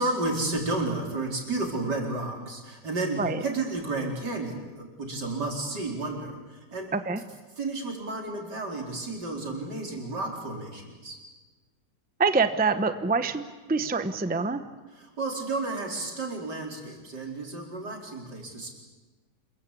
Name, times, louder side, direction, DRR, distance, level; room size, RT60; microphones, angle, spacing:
voice 1, 0.0-6.9 7.6-11.2 14.9-18.7, right 2 dB, 80° right, 1 dB, 5.1 m, -32 dB
voice 2, 12.2-14.7, right 4 dB, 5° right, 10 dB, 0.7 m, -26 dB
27.5 x 22.0 x 8.5 m, 1.3 s
omnidirectional pair, 1.8 m